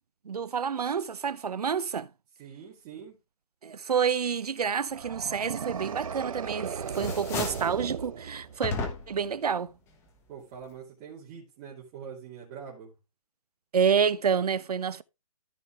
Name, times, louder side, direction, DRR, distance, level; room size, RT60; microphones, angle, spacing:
voice 1, 0.3-2.1 3.6-8.7 9.1-9.7 13.7-15.0, right 7 dB, 85° right, 0.8 m, -28 dB
voice 2, 2.4-3.2 10.3-12.9, right 7 dB, 25° right, 2.9 m, -44 dB
sound 1, 4.9-8.8, right 7 dB, 60° right, 1.1 m, -36 dB
sound 2, 6.0-6.5 6.8-7.8 8.6-9.3, left 4 dB, 15° left, 1.4 m, -34 dB
14.0 x 5.3 x 3.3 m
hypercardioid pair, 160°, 19 cm